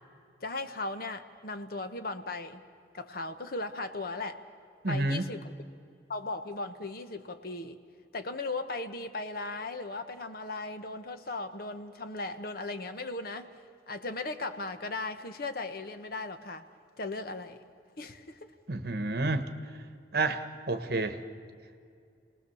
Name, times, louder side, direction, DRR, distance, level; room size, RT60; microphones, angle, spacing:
voice 1, 0.4-2.6 2.9-4.4 4.9-5.4 6.1-7.8 8.1-13.5 13.9-16.6 17.0-17.6 18.0-18.5, left 2 dB, 55° left, 9 dB, 1.2 m, -37 dB
voice 2, 4.8-5.3 18.7-19.5 20.1-21.2, right 2 dB, 60° right, 9 dB, 1.3 m, -30 dB
29.5 x 19.0 x 7.1 m, 2.4 s
head